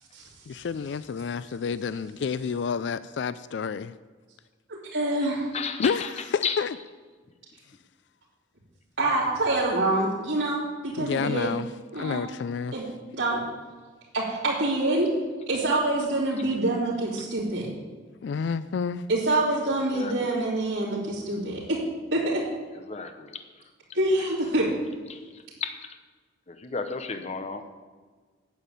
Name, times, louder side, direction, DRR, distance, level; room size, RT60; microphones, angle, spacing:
voice 1, 0.5-3.9 5.8-6.8 11.0-12.7 18.2-19.1, left 6 dB, 65° left, 15 dB, 0.4 m, -29 dB
voice 2, 4.7-5.5 9.0-11.6 11.9-12.2 12.7-12.9 13.1-13.4 14.1-15.1 15.5-17.7 19.1-21.8 22.1-22.4 23.9-24.7, right 2 dB, 85° right, -9 dB, 2.7 m, -26 dB
voice 3, 5.5-6.1 6.4-6.6 19.9-20.3 22.8-23.3 25.1-25.2 25.6-25.9 26.5-27.6, left 5 dB, 35° left, 7 dB, 0.8 m, -32 dB
9.1 x 7.2 x 8.4 m, 1.4 s
head